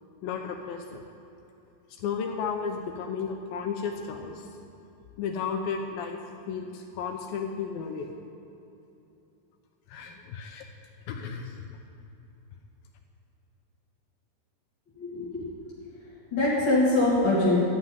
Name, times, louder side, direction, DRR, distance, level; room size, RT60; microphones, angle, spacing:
voice 1, 0.2-1.0 2.0-4.5 5.2-6.2 6.5-8.1 9.9-10.6 11.1-11.6, left 6 dB, 75° left, 3 dB, 2.3 m, -33 dB
voice 2, 15.0-15.5 16.3-17.6, left 2 dB, 35° left, -9 dB, 2.2 m, -23 dB
13.5 x 6.0 x 9.2 m, 2.9 s
omnidirectional pair, 4.8 m